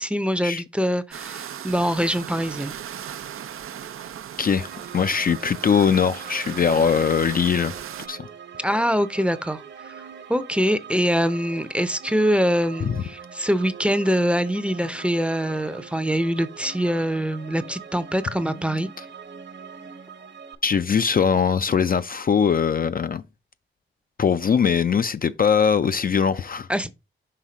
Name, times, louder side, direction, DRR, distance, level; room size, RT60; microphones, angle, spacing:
voice 1, 0.0-2.7 8.6-10.0 10.3-18.9 26.7-26.9, equal, 5° right, 0.5 m, -24 dB
sound 1, 1.1-8.1, right 9 dB, 90° right, 0.5 m, -37 dB
sound 2, 4.6-20.5, right 6 dB, 55° right, 1.0 m, -42 dB
voice 2, 4.9-7.7 8.1-8.3 20.6-23.2 24.2-26.7, left 6 dB, 45° left, 0.4 m, -21 dB
5.8 x 3.5 x 4.9 m
wide cardioid pair, 95°, 21 cm